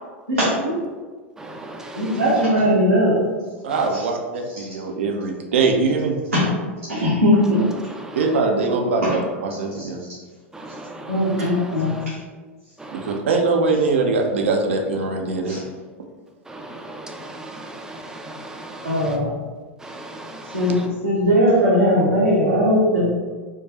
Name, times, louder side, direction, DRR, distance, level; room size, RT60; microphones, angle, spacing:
voice 1, 0.3-0.7 2.0-3.2 3.9-4.0 6.3-6.5 6.8-7.7 9.8-9.9 11.1-12.1 15.5-15.6 18.8-19.3 20.5-23.1, equal, 90° right, -10 dB, 1.0 m, -19 dB
voice 2, 1.4-2.4 3.7-3.9 7.7-8.4 10.5-12.1 12.8-13.2 16.4-19.2 19.8-20.9, right 1 dB, 10° right, 2 dB, 0.5 m, -37 dB
voice 3, 3.6-6.2 8.1-10.0 12.9-15.6, right 3 dB, 70° right, 2 dB, 0.6 m, -22 dB
4.5 x 2.3 x 2.8 m, 1.4 s
figure-of-eight pair, 90°, 7 cm